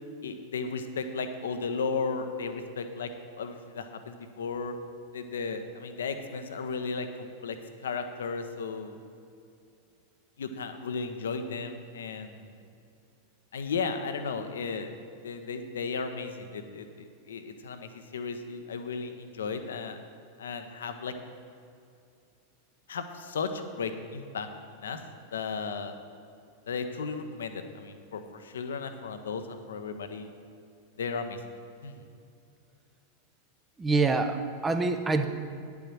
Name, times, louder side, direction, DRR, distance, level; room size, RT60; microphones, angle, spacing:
voice 1, 0.2-4.7 5.1-7.6 7.8-9.0 10.4-12.5 13.5-14.9 15.2-20.0 20.4-21.1 22.9-24.5 24.7-25.0 25.3-25.9 26.7-30.3 31.0-31.4 31.8-31.9, left 5 dB, 65° left, 8 dB, 0.9 m, -35 dB
voice 2, 33.8-35.3, right 3 dB, 15° right, 6 dB, 0.8 m, -26 dB
10.5 x 7.2 x 7.3 m, 2.5 s
figure-of-eight pair, 90°, 0 cm